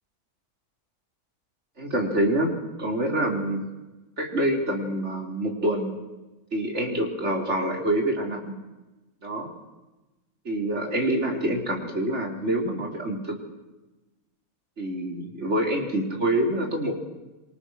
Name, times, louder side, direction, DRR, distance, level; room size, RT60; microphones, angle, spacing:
voice 1, 1.8-3.7 4.2-5.9 6.5-8.5 9.2-9.5 10.5-13.4 14.8-17.0, right 1 dB, 50° right, 2 dB, 4.0 m, -26 dB
27.0 x 25.0 x 6.3 m, 1.1 s
omnidirectional pair, 1.6 m